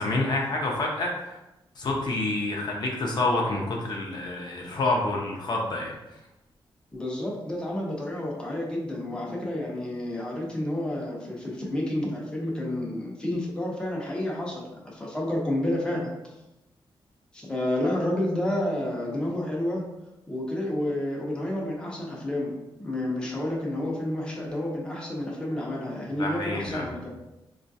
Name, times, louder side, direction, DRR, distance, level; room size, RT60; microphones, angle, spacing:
voice 1, 0.0-1.4 1.8-5.9 26.2-26.9, left 2 dB, 55° left, -1 dB, 0.6 m, -28 dB
voice 2, 6.9-16.1 17.3-19.9 20.3-27.1, left 1 dB, 10° left, -3 dB, 0.8 m, -30 dB
4.3 x 2.3 x 2.7 m, 0.95 s
wide cardioid pair, 120°, 9 cm